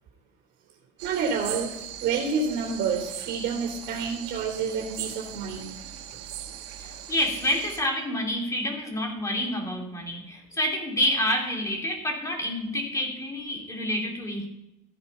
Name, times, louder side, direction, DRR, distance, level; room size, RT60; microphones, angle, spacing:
voice 1, 1.0-1.7 2.0-5.7 6.1-6.2, right 5 dB, 60° right, -1 dB, 3.3 m, -28 dB
sound 1, 1.0-7.8, right 10 dB, 80° right, 1.6 m, -39 dB
voice 2, 6.8-14.5, equal, 15° left, 1 dB, 3.2 m, -28 dB
14.5 x 8.8 x 5.6 m, 0.85 s
cardioid pair, 130°, 19 cm